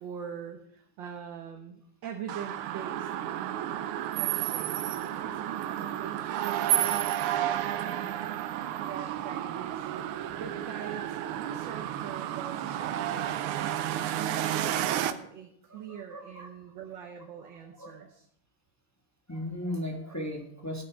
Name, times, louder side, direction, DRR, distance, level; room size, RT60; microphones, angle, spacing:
voice 1, 0.0-3.1 4.1-8.1 8.8-9.9 10.3-13.4 14.2-18.3, right 8 dB, 65° right, 4 dB, 1.5 m, -43 dB
sound 1, 2.3-15.1, right 12 dB, 80° right, 1.5 m, -31 dB
voice 2, 15.7-16.5 17.8-18.0 19.3-20.8, left 1 dB, 10° left, 2 dB, 1.0 m, -37 dB
13.5 x 5.4 x 6.1 m, 0.70 s
omnidirectional pair, 2.4 m